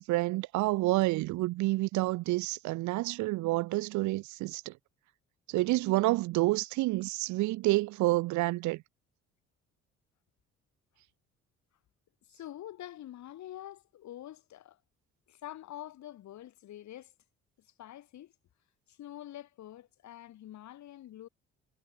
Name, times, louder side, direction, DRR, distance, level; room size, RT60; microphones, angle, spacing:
voice 1, 0.0-4.7 5.5-8.8, right 20 dB, 80° right, 0.7 m, -29 dB
voice 2, 12.3-14.8 15.3-17.1 17.6-18.3 18.9-21.3, left 12 dB, 75° left, 6.7 m, -46 dB
supercardioid pair, 65°, 29 cm